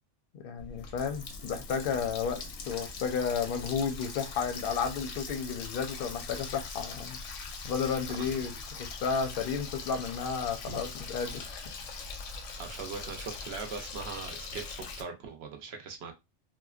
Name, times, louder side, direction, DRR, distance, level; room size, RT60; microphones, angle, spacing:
voice 1, 0.3-7.2 7.6-11.6, left 6 dB, 60° left, 0.7 m, -32 dB
Water tap faucet, 0.6-15.0, left 4 dB, 85° left, 0.9 m, -41 dB
voice 2, 12.6-16.1, right 5 dB, 65° right, 0.8 m, -41 dB
3.0 x 2.1 x 2.3 m
omnidirectional pair, 1.3 m